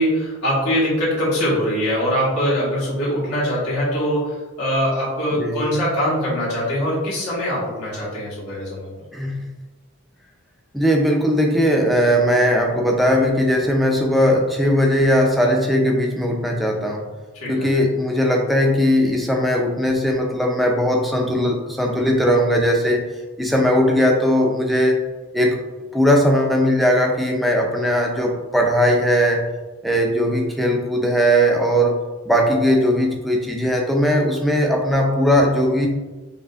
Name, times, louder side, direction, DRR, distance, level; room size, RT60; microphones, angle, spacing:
voice 1, 0.0-8.9 17.3-17.7, equal, 75° left, -7 dB, 1.4 m, -22 dB
voice 2, 5.3-5.6 9.1-9.5 10.7-17.1 17.5-23.0 23.4-25.0 25.3-29.5 29.8-32.0 32.3-35.9, equal, ahead, 0 dB, 0.3 m, -19 dB
4.7 x 2.5 x 2.4 m, 1.2 s
head